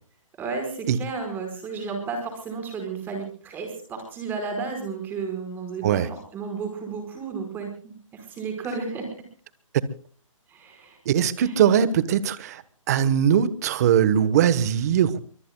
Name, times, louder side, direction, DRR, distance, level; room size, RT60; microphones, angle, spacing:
voice 1, 0.4-9.0 10.5-11.0 11.4-11.5, right 4 dB, 10° right, 5 dB, 4.8 m, -33 dB
voice 2, 11.0-12.6 12.9-15.2, right 9 dB, 30° right, 16 dB, 1.1 m, -20 dB
27.0 x 23.5 x 2.3 m, 0.42 s
hypercardioid pair, 165°, 17 cm